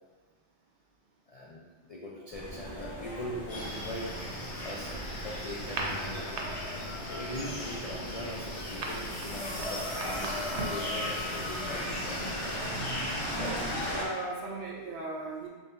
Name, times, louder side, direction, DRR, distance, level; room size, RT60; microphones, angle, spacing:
voice 1, 1.3-4.1 4.6-4.9 5.2-12.6 13.4-13.6, left 1 dB, 60° left, -4 dB, 0.4 m, -41 dB
sound 1, 2.3-14.0, equal, 35° left, 0.9 m, -39 dB
sound 2, 3.5-13.9, left 1 dB, 80° left, 1.3 m, -38 dB
sound 3, 5.6-6.4 6.8-7.1 7.3-10.9, right 3 dB, 80° right, 0.9 m, -38 dB
voice 2, 13.3-15.5, right 2 dB, 60° right, -2 dB, 0.7 m, -38 dB
3.8 x 3.3 x 2.6 m, 1.4 s
omnidirectional pair, 1.2 m